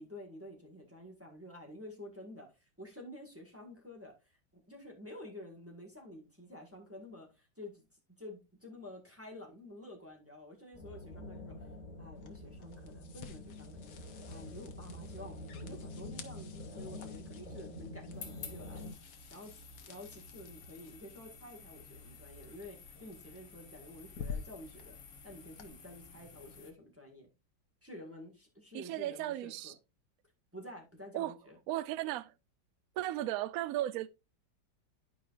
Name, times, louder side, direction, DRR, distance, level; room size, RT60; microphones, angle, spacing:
voice 1, 0.0-7.9 8.2-11.7 12.0-13.9 14.3-18.8 19.3-25.0 25.2-27.3 27.8-29.7 30.5-31.6, left 1 dB, 10° right, 1.5 m, -50 dB
sound 1, 10.7-18.9, left 1 dB, 10° left, 3.5 m, -47 dB
sound 2, 12.1-25.7, left 6 dB, 65° left, 1.5 m, -51 dB
sound 3, 18.1-26.7, left 5 dB, 85° left, 2.2 m, -52 dB
voice 2, 28.7-29.7 31.1-31.4 31.7-32.3 33.0-34.1, right 14 dB, 80° right, 0.8 m, -35 dB
11.5 x 4.9 x 2.5 m
omnidirectional pair, 2.0 m